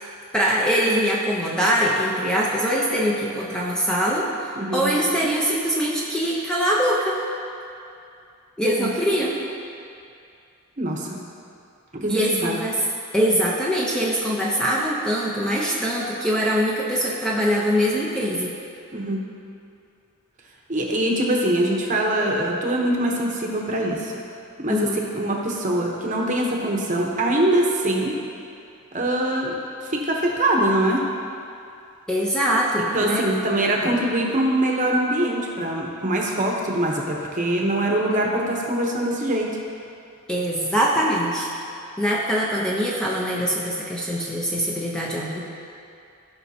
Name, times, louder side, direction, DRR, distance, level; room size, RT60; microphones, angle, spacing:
voice 1, 0.3-7.2 8.6-9.3 12.1-12.8 13.1-18.5 24.7-25.0 32.1-33.3 33.8-33.9 40.3-41.5 42.0-45.4, equal, 5° left, -5 dB, 0.7 m, -23 dB
voice 2, 4.5-4.9 8.8-8.9 10.8-11.2 11.9-12.6 18.9-19.2 20.7-24.1 24.6-24.9 25.1-28.2 28.9-31.0 32.8-39.5, right 1 dB, 35° right, -1 dB, 1.0 m, -23 dB
15.5 x 5.7 x 2.8 m, 2.5 s
head